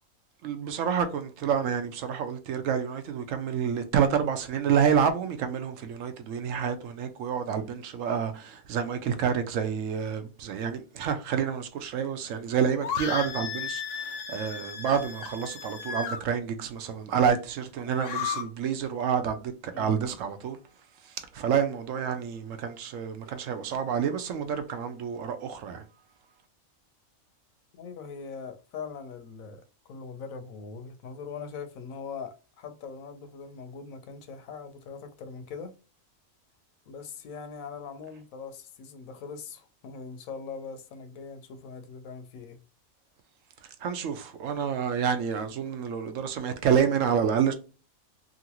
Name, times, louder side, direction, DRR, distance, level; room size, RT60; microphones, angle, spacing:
voice 1, 0.4-20.6 21.0-25.8 43.6-47.5, right 7 dB, 70° right, 0.9 m, -28 dB
sound 1, 12.8-16.2 17.9-18.4, left 7 dB, 60° left, 0.7 m, -34 dB
voice 2, 27.7-35.7 36.9-42.6, left 5 dB, 80° left, 1.0 m, -41 dB
3.0 x 2.5 x 2.8 m
omnidirectional pair, 1.4 m